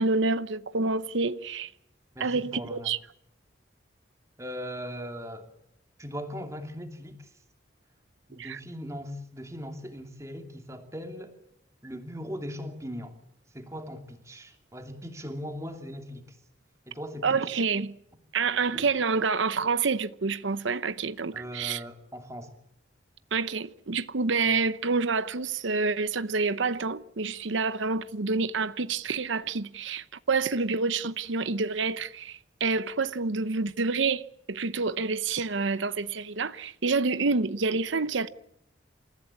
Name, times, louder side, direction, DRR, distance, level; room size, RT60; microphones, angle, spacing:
voice 1, 0.0-1.7 2.2-3.0 8.4-8.6 17.2-17.9 18.3-21.8 23.3-38.3, right 4 dB, 80° right, 0.8 m, -28 dB
voice 2, 2.1-2.9 4.4-5.5 6.0-7.3 8.3-11.4 11.8-13.2 13.5-16.4 16.9-17.5 18.7-18.9 21.3-22.6, equal, 15° right, 2.7 m, -39 dB
28.0 x 15.5 x 8.5 m
head